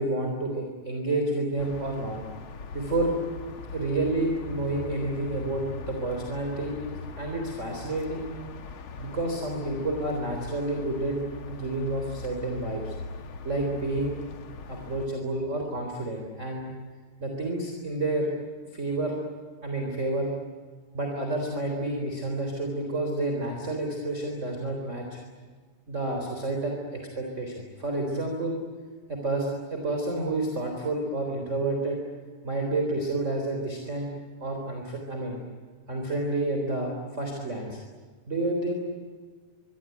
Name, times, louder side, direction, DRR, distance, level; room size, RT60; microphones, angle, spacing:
voice 1, 0.0-2.2 2.7-3.1 3.7-6.9 7.2-8.3 9.0-11.2 11.5-13.0 13.4-14.1 14.7-16.7 17.2-18.3 18.7-19.2 19.6-20.3 20.9-25.2 25.9-28.6 29.1-32.0 32.4-34.1 34.4-35.4 35.9-37.8 38.3-38.7, right 2 dB, 20° right, 2 dB, 3.9 m, -29 dB
sound 1, 1.6-15.1, left 4 dB, 50° left, 1.8 m, -40 dB
25.0 x 24.0 x 9.3 m, 1.5 s
omnidirectional pair, 3.7 m